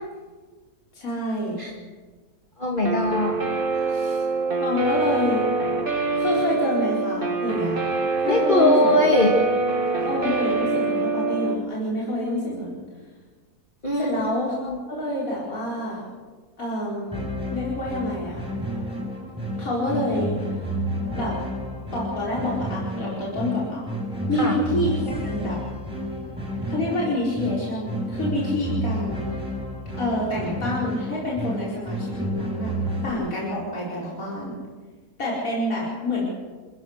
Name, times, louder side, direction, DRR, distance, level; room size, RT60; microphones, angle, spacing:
voice 1, 0.9-1.6 4.6-5.4 6.2-7.8 8.2-9.0 10.0-12.8 14.0-16.0 16.6-18.4 19.6-20.5 21.1-21.4 21.9-23.9 24.3-24.9 25.2-25.6 26.7-29.2 30.0-32.7 33.0-34.6 35.2-36.3, left 1 dB, 60° left, -6 dB, 5.0 m, -27 dB
voice 2, 2.6-3.3 3.9-4.2 8.3-9.4 13.8-14.3 14.7-14.8 24.4-24.6, left 1 dB, 30° left, -1 dB, 2.3 m, -21 dB
Guitar, 2.8-11.5, right 3 dB, 35° right, 2.2 m, -24 dB
sound 1, 17.1-33.1, equal, 5° right, 6.0 m, -30 dB
28.0 x 15.0 x 6.6 m, 1.4 s
omnidirectional pair, 1.7 m